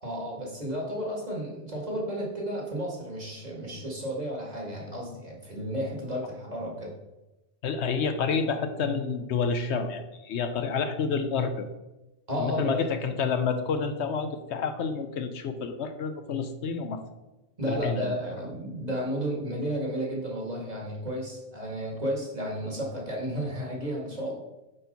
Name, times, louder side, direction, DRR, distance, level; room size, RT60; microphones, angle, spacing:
voice 1, 0.0-6.9 12.3-13.1 17.6-24.3, equal, 35° right, -2 dB, 1.8 m, -32 dB
voice 2, 7.6-11.7 12.4-17.0 17.7-18.3, left 5 dB, 70° left, 8 dB, 0.9 m, -29 dB
8.7 x 4.4 x 4.0 m, 1.0 s
omnidirectional pair, 1.2 m